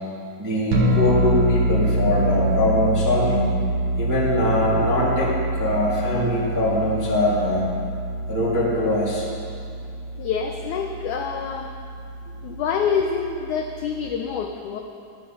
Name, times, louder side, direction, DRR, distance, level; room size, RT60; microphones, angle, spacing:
voice 1, 0.4-3.4 4.0-5.3 5.6-7.6 8.3-9.3, left 1 dB, 10° right, -6 dB, 1.0 m, -22 dB
sound 1, 0.7-14.1, right 1 dB, 60° right, 2.4 m, -26 dB
voice 2, 10.2-11.7 12.4-14.8, left 6 dB, 85° left, 3 dB, 1.7 m, -26 dB
12.5 x 11.0 x 5.6 m, 2.4 s
omnidirectional pair, 4.4 m